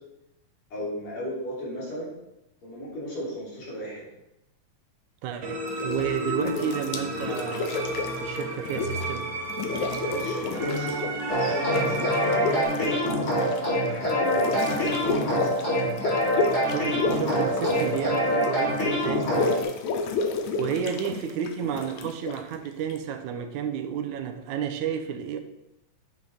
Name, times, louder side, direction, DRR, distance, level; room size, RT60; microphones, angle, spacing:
voice 1, 0.7-2.1 2.6-4.0 10.0-13.1 13.8-15.6 19.1-19.4, equal, 60° left, -6 dB, 4.4 m, -35 dB
voice 2, 5.2-9.3 16.7-19.3 20.6-25.4, right 8 dB, 80° right, 7 dB, 2.1 m, -31 dB
sound 1, 5.4-12.6, right 1 dB, 45° right, 1.2 m, -32 dB
sound 2, 5.7-6.1 6.4-9.2 9.5-11.2 11.5-23.0, left 4 dB, 85° left, 2.2 m, -31 dB
sound 3, 11.3-19.6, equal, 30° left, 3.7 m, -25 dB
9.7 x 7.4 x 3.5 m, 0.88 s
omnidirectional pair, 3.4 m